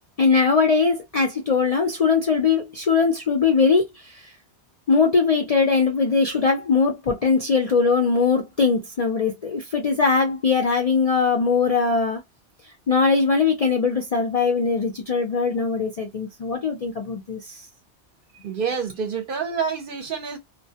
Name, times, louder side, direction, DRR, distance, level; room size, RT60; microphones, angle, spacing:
voice 1, 0.2-4.3 4.9-12.2 12.9-17.7, left 5 dB, 55° left, 0.4 m, -21 dB
voice 2, 18.4-20.4, right 6 dB, 60° right, 0.6 m, -27 dB
2.2 x 2.2 x 2.7 m
omnidirectional pair, 1.2 m